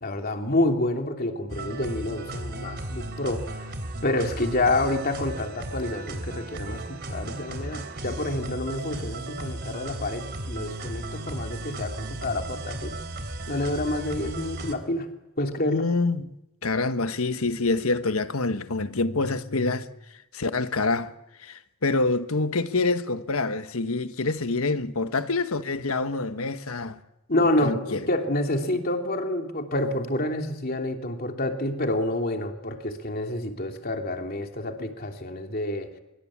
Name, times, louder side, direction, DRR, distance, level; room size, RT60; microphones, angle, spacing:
voice 1, 0.0-3.7 4.0-13.0 13.5-15.1 15.4-15.8 27.3-35.9, left 1 dB, 45° left, 2.9 m, -28 dB
sound 1, 1.5-14.7, right 2 dB, 50° right, 3.3 m, -35 dB
voice 2, 15.7-16.3 16.6-19.9 20.3-21.1 21.4-27.0 27.6-28.0, left 3 dB, 80° left, 1.3 m, -26 dB
25.0 x 23.0 x 8.6 m
head